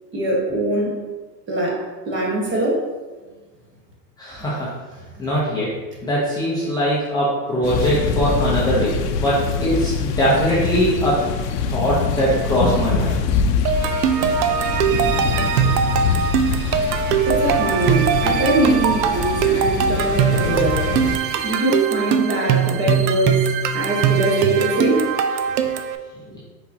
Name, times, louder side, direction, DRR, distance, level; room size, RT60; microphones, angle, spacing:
voice 1, 0.1-1.0 1.5-2.9 5.1-5.2 17.2-20.9 21.4-23.4 23.7-25.1, right 1 dB, 25° right, -3 dB, 1.2 m, -22 dB
voice 2, 4.2-4.7 5.2-5.7 6.0-11.2 11.7-13.2, equal, 10° left, -8 dB, 0.6 m, -21 dB
sound 1, 7.6-21.2, left 5 dB, 75° left, 0.6 m, -24 dB
sound 2, 13.7-26.0, right 8 dB, 85° right, 0.6 m, -21 dB
4.5 x 4.2 x 2.7 m, 1.3 s
supercardioid pair, 135°, 48 cm